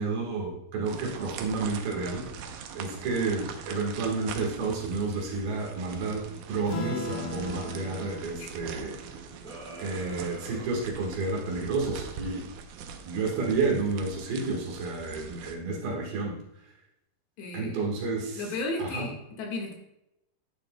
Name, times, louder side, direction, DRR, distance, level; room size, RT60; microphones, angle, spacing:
voice 1, 0.0-2.3 2.7-9.0 9.8-12.5 13.1-16.4 17.5-18.5 18.8-19.1, right 3 dB, 70° right, 0 dB, 3.3 m, -30 dB
sound 1, 0.9-15.6, right 7 dB, 90° right, 1.8 m, -43 dB
Acoustic guitar / Strum, 6.7-11.5, left 2 dB, 50° left, 2.2 m, -40 dB
sound 2, 9.4-11.6, right 1 dB, 30° right, 4.5 m, -45 dB
voice 2, 17.4-17.8 18.4-19.7, left 2 dB, 85° left, 1 dB, 3.9 m, -34 dB
12.0 x 10.5 x 2.3 m, 0.85 s
omnidirectional pair, 4.7 m